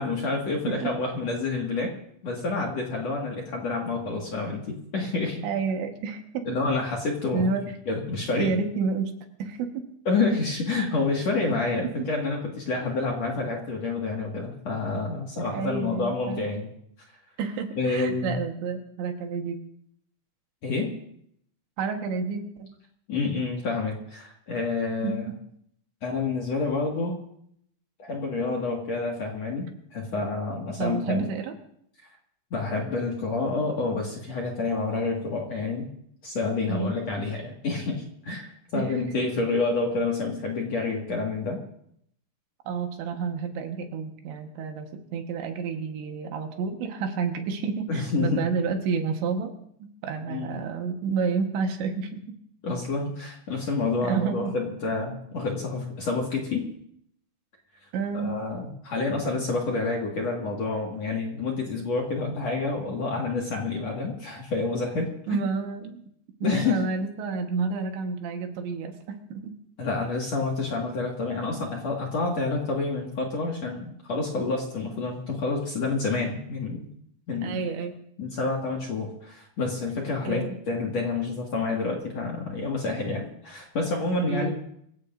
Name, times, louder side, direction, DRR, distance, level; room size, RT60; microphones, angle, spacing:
voice 1, 0.0-1.9 2.2-5.4 6.5-7.5 7.9-8.6 10.1-16.7 17.8-18.3 20.6-20.9 23.1-25.2 26.0-27.2 28.0-31.3 32.5-35.9 36.2-41.6 47.9-48.4 50.3-50.5 52.6-56.7 58.1-65.4 66.4-66.8 69.8-76.9 77.3-77.6 78.2-84.5, left 3 dB, 55° left, -1 dB, 1.9 m, -28 dB
voice 2, 5.4-6.5 7.3-7.7 8.4-9.1 9.4-9.9 11.5-11.6 15.4-16.4 17.4-19.6 21.8-22.7 25.0-25.2 30.8-31.5 36.7-37.0 38.7-38.9 42.7-49.6 50.0-52.2 54.0-54.5 57.9-58.3 65.3-66.0 66.4-69.5 77.4-78.0 80.3-80.6 84.3-84.5, right 5 dB, 70° right, 4 dB, 3.4 m, -30 dB
25.5 x 16.0 x 2.6 m, 0.69 s
omnidirectional pair, 5.8 m